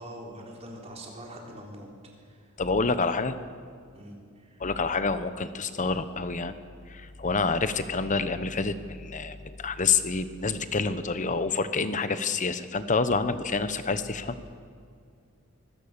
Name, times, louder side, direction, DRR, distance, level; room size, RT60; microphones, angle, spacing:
voice 1, 0.0-1.9 2.2-2.5 3.9-4.6, right 1 dB, 30° right, -1 dB, 4.0 m, -44 dB
voice 2, 2.6-3.3 4.6-6.5 6.9-14.5, left 4 dB, 35° left, 11 dB, 1.0 m, -28 dB
24.5 x 17.0 x 6.8 m, 2.3 s
head